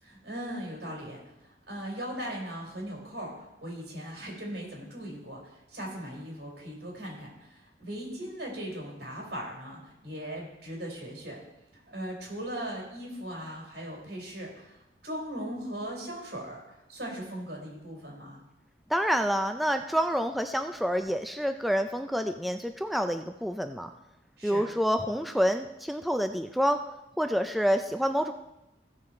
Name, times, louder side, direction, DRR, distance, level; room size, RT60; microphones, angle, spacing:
voice 1, 0.0-11.4 11.7-18.4 24.4-24.6, equal, 75° right, -2 dB, 4.0 m, -39 dB
voice 2, 18.9-23.9 24.4-26.8 27.2-28.3, equal, ahead, 6 dB, 0.3 m, -28 dB
15.5 x 6.3 x 4.3 m, 0.94 s
head